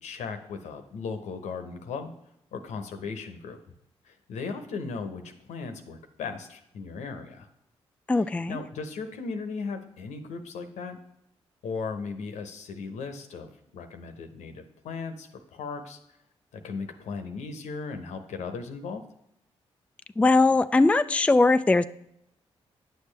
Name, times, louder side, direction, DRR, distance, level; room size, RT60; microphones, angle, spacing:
voice 1, 0.0-2.1 2.5-3.6 4.0-5.2 5.5-7.5 8.1-11.0 11.6-16.0 16.5-19.0, left 4 dB, 80° left, 7 dB, 0.9 m, -37 dB
voice 2, 8.1-8.6 20.2-21.8, left 3 dB, 10° left, 12 dB, 0.3 m, -20 dB
9.2 x 6.6 x 3.3 m, 0.79 s
supercardioid pair, 50°, 12 cm